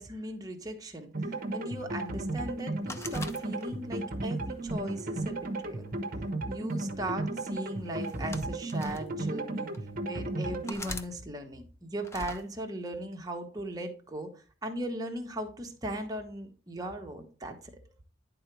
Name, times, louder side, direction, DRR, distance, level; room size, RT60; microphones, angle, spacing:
voice 1, 0.0-5.9 6.5-9.7 10.0-17.6, right 1 dB, 20° right, 2 dB, 1.1 m, -38 dB
sound 1, 1.1-10.7, right 2 dB, 45° right, 0.9 m, -34 dB
sound 2, 2.9-4.0 4.6-5.7 6.7-7.0 8.0-9.0 9.7-9.8 10.7-11.1 12.0-12.4, left 2 dB, 15° left, 0.5 m, -42 dB
10.5 x 3.9 x 4.6 m, 0.38 s
head